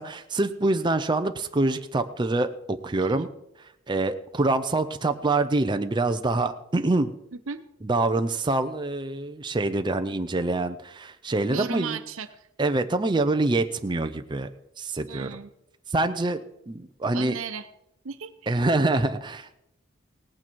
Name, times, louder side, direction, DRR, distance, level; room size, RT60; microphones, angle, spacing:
voice 1, 0.0-3.3 3.9-7.1 7.8-12.0 12.6-14.5 14.8-15.3 15.9-16.4 16.7-17.4 18.5-19.6, right 2 dB, 25° right, 7 dB, 0.6 m, -25 dB
voice 2, 11.5-12.5 15.1-15.5 17.1-17.7 18.0-18.5, right 5 dB, 80° right, 10 dB, 0.9 m, -35 dB
18.0 x 8.8 x 4.5 m, 0.81 s
head